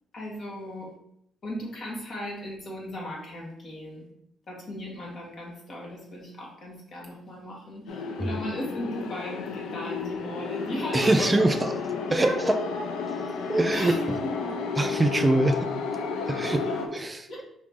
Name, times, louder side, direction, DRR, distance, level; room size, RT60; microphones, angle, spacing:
voice 1, 0.1-0.9 1.4-4.1 4.5-11.8 12.2-12.8 13.7-14.6 16.5-17.0 17.3-17.4, left 1 dB, 55° left, -2 dB, 1.7 m, -36 dB
sound 1, 7.9-16.9, left 5 dB, 85° left, 0.5 m, -32 dB
voice 2, 10.9-11.7 12.1-12.6 13.5-14.2 14.8-15.7 16.1-16.6 16.9-17.4, right 2 dB, 20° right, 7 dB, 0.4 m, -24 dB
4.7 x 3.1 x 3.5 m, 0.75 s
cardioid pair, 90°, 0 cm